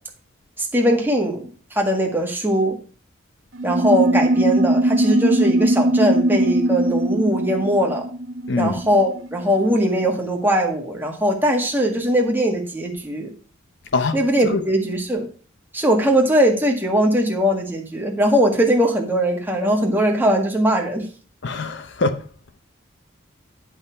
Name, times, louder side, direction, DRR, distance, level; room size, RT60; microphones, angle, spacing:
voice 1, 0.6-2.8 3.6-8.0 8.6-13.3 14.1-15.3 15.7-21.1, equal, 10° right, 1.7 m, -20 dB
sound 1, 3.5-9.5, right 1 dB, 70° right, 1.1 m, -20 dB
voice 2, 8.5-8.8 13.9-14.6 21.4-22.3, left 3 dB, 60° left, 0.6 m, -24 dB
10.0 x 5.5 x 4.6 m
head